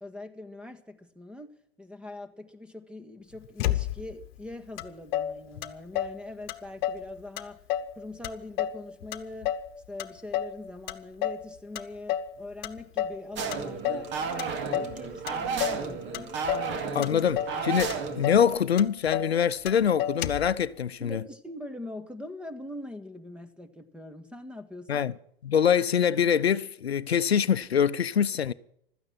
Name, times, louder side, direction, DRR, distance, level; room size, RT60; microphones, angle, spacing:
voice 1, 0.0-7.6 7.9-9.6 9.9-16.4 16.7-17.2 21.0-25.1, left 1 dB, 5° right, 1.5 m, -42 dB
Motor vehicle (road), 3.6-4.3 4.8-4.9 5.1-6.2 6.5-7.1 7.4-8.0 8.2-9.7 10.0-10.6 10.9-11.5 11.8-12.3 12.6-13.2 13.5-14.1 14.4-15.0 15.3-15.9 16.1-16.7 17.0-17.6 17.9-18.0 18.2-18.5 18.8-19.4 19.7-19.8 20.0-20.5, left 11 dB, 50° left, 1.2 m, -30 dB
sound 1, 13.4-18.6, right 5 dB, 40° right, 2.3 m, -33 dB
voice 2, 16.9-21.2 24.9-25.1 25.4-28.5, left 8 dB, 85° left, 0.7 m, -24 dB
16.0 x 13.0 x 6.0 m
figure-of-eight pair, 100°, 30 cm